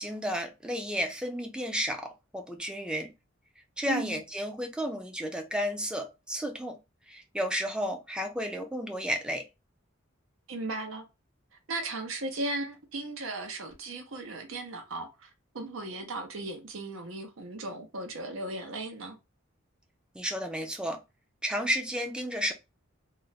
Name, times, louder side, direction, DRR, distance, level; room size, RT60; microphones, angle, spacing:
voice 1, 0.0-3.1 3.8-6.8 7.1-9.4 20.1-21.0 21.4-22.5, equal, 5° right, 0.4 m, -32 dB
voice 2, 3.9-4.2 10.5-11.0 11.7-15.3 15.5-19.2, right 2 dB, 75° right, 0.8 m, -36 dB
2.4 x 2.2 x 4.0 m
head